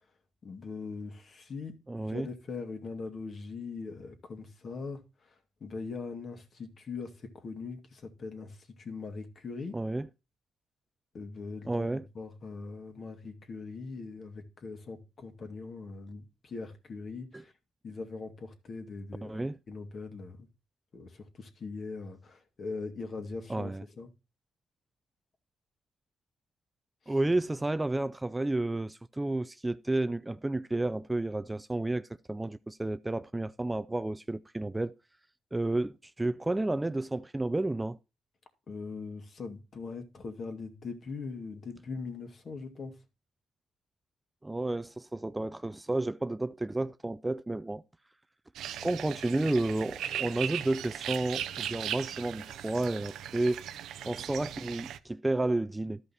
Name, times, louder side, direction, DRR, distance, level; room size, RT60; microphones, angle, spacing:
voice 1, 0.4-5.0 5.6-9.8 11.1-17.5 17.8-20.5 20.9-24.1 27.1-27.2 38.7-43.0, left 4 dB, 50° left, 2.1 m, -41 dB
voice 2, 1.9-2.3 9.7-10.1 11.7-12.1 17.3-17.4 19.2-19.6 23.5-23.8 27.1-34.9 35.5-38.0 44.4-47.8 48.8-53.6 54.0-56.0, right 2 dB, 15° right, 0.4 m, -31 dB
sound 1, 48.6-55.0, right 10 dB, 80° right, 0.6 m, -38 dB
12.5 x 5.5 x 4.2 m
cardioid pair, 90°, 0 cm